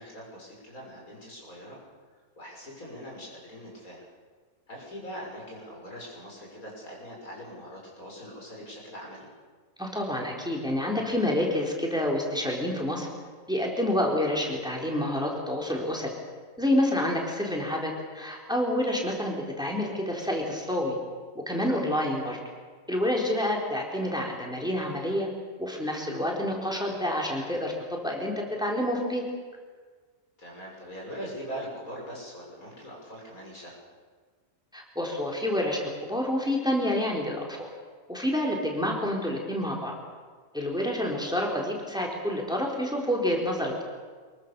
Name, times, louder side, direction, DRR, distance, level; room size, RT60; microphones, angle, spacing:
voice 1, 0.0-1.8 2.4-4.1 4.7-9.3 17.0-17.2 23.4-23.5 30.4-33.7 40.9-41.1, equal, 90° left, -3 dB, 7.0 m, -42 dB
voice 2, 9.8-13.1 13.5-16.1 16.6-21.0 21.5-22.4 22.9-25.3 25.6-29.2 34.7-37.7 38.1-39.9 40.5-43.8, left 1 dB, 5° right, -1 dB, 3.9 m, -28 dB
24.5 x 22.5 x 6.9 m, 1.5 s
omnidirectional pair, 1.4 m